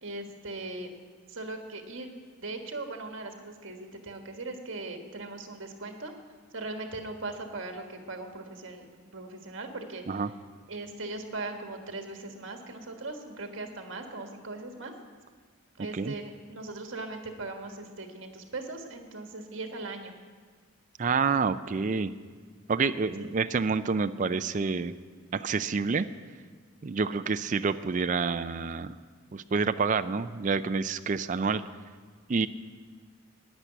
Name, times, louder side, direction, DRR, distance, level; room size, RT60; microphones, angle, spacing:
voice 1, 0.0-0.9 1.3-6.1 6.5-10.2 10.7-14.9 15.8-20.1 23.2-23.5, right 2 dB, 65° right, 4 dB, 1.6 m, -39 dB
voice 2, 21.0-22.1 22.7-24.9 25.3-26.1 26.8-29.0 29.3-31.6 32.3-32.5, right 5 dB, 35° right, 11 dB, 0.4 m, -28 dB
10.5 x 10.0 x 8.1 m, 1.6 s
head